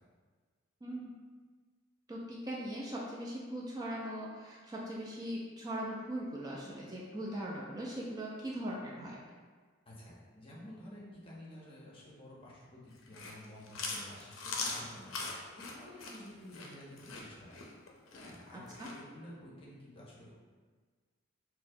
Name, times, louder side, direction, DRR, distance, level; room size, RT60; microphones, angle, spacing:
voice 1, 0.8-1.2 2.1-9.2 18.5-18.9, right 1 dB, 20° right, -4 dB, 0.3 m, -40 dB
voice 2, 9.9-17.6 18.1-20.3, left 1 dB, 30° left, -5 dB, 0.7 m, -51 dB
Chewing mastication, 13.0-19.0, left 4 dB, 85° left, 0.5 m, -41 dB
4.4 x 2.1 x 2.6 m, 1.5 s
head